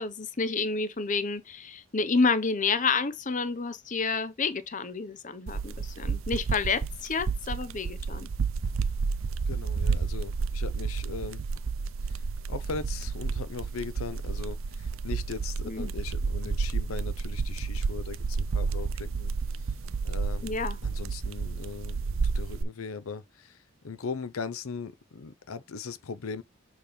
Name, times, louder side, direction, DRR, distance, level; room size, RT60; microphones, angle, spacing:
voice 1, 0.0-8.3 15.6-15.9 20.4-20.8, left 4 dB, 35° left, 0.8 m, -29 dB
sound 1, 5.5-22.6, right 4 dB, 70° right, 0.5 m, -31 dB
voice 2, 9.5-11.4 12.0-12.2 12.5-19.3 20.0-20.5 20.8-22.0 22.2-23.6 23.8-26.4, left 5 dB, 85° left, 0.6 m, -39 dB
6.9 x 3.2 x 5.2 m
head